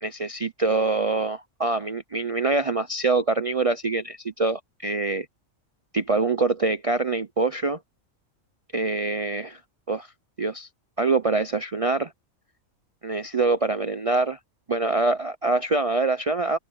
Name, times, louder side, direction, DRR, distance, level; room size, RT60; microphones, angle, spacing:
voice 1, 0.0-5.3 5.9-7.8 8.7-9.6 9.9-10.1 10.4-10.7 11.0-12.1 13.0-14.4 14.7-16.6, right 3 dB, 50° right, 0.4 m, -24 dB
open air
omnidirectional pair, 1.4 m